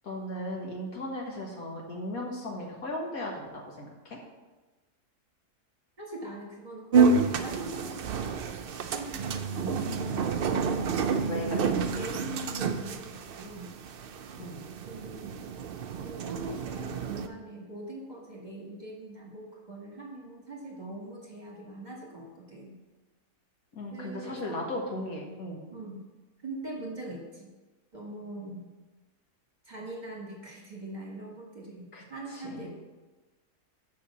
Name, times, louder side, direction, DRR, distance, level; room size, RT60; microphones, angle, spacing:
voice 1, 0.0-4.2 9.5-10.2 10.5-11.0 11.3-11.9 14.4-14.6 23.7-25.6 31.9-32.7, left 1 dB, 65° left, -1 dB, 1.9 m, -37 dB
voice 2, 6.0-8.4 8.9-9.4 11.5-13.7 14.9-15.4 15.9-22.8 23.9-24.6 25.7-26.0 26.4-27.5 27.9-28.7 29.7-32.7, right 2 dB, 30° right, -3 dB, 1.7 m, -42 dB
sound 1, 6.9-17.3, right 5 dB, 80° right, 0.5 m, -29 dB
6.8 x 5.7 x 7.1 m, 1.2 s
omnidirectional pair, 1.7 m